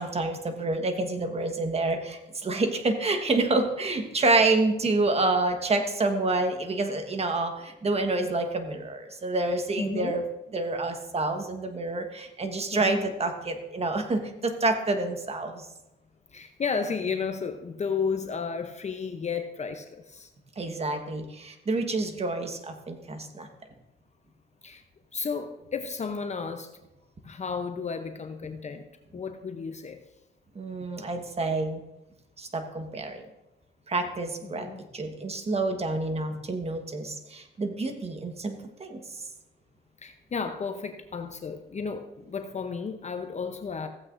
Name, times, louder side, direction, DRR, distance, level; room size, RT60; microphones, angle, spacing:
voice 1, 0.0-10.2 10.5-15.7 20.6-23.5 30.5-31.8 32.4-33.2 33.9-34.7 34.9-39.2, right 2 dB, 30° right, 6 dB, 1.4 m, -28 dB
voice 2, 9.8-10.2 12.7-13.1 16.3-20.3 24.6-24.8 25.1-26.7 27.2-28.9 29.1-30.0 34.4-34.8 40.0-43.9, left 5 dB, 35° left, 6 dB, 0.8 m, -33 dB
15.5 x 8.2 x 2.6 m, 0.94 s
cardioid pair, 90°, 20 cm